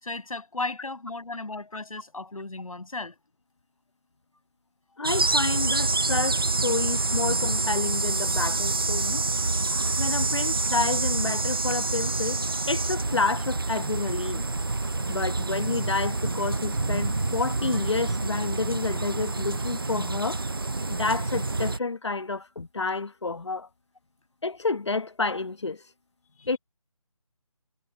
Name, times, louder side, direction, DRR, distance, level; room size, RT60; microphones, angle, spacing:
voice 1, 0.0-3.2 26.3-26.5, left 3 dB, 70° left, 6.8 m, -35 dB
voice 2, 5.0-9.2 10.0-12.4 12.7-14.4 15.1-20.4 20.9-23.7 24.4-25.8 26.4-26.6, left 3 dB, 50° left, 1.2 m, -29 dB
sound 1, 5.0-21.8, right 3 dB, 40° right, 0.7 m, -27 dB
figure-of-eight pair, 180°, 18 cm